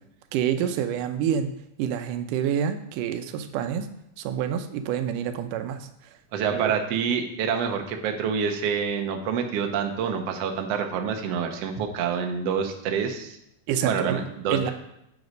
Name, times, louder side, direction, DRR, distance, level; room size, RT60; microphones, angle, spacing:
voice 1, 0.3-1.5 1.8-3.9 4.2-5.9 6.5-6.7 13.7-14.2 14.5-14.7, right 9 dB, 90° right, 8 dB, 2.3 m, -27 dB
voice 2, 6.3-13.4 13.8-14.7, right 6 dB, 65° right, 4 dB, 1.8 m, -27 dB
8.0 x 7.8 x 5.3 m, 0.78 s
omnidirectional pair, 3.6 m